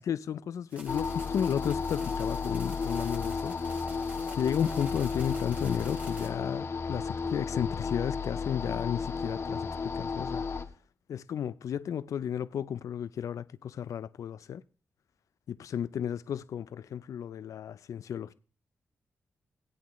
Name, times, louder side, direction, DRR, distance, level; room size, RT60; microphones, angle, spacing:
voice 1, 0.0-3.5 4.4-10.5 11.1-14.6 15.5-18.3, left 9 dB, 75° left, 0.5 m, -33 dB
sound 1, 0.7-6.3, right 1 dB, 25° right, 2.7 m, -49 dB
sound 2, 0.9-10.6, left 5 dB, 55° left, 1.4 m, -33 dB
19.0 x 8.5 x 3.1 m
cardioid pair, 65°, 6 cm